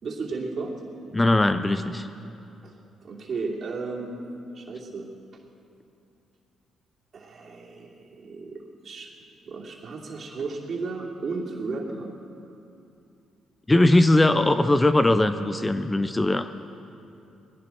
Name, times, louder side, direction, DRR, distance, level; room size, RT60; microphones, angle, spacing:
voice 1, 0.0-0.7 2.6-2.7 3.0-4.2 4.5-5.1 7.1-9.1 9.4-12.1, right 4 dB, 50° right, -2 dB, 2.7 m, -34 dB
voice 2, 1.1-2.1 13.7-16.5, left 2 dB, 15° left, 10 dB, 0.5 m, -20 dB
20.0 x 15.5 x 4.5 m, 2.7 s
cardioid pair, 90°, 0 cm